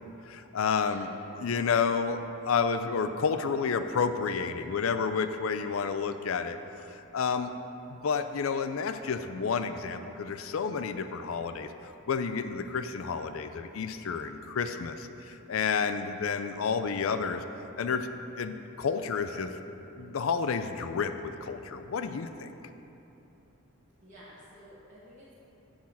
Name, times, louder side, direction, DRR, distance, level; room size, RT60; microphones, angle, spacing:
voice 1, 0.3-1.1 1.4-2.2 2.5-6.6 6.9-7.5 7.9-17.4 17.8-18.1 18.4-19.5 20.0-22.5, left 5 dB, 65° left, 9 dB, 0.4 m, -30 dB
voice 2, 1.7-2.0 24.0-25.3, equal, 35° right, -9 dB, 1.2 m, -52 dB
7.3 x 4.9 x 7.2 m, 2.9 s
head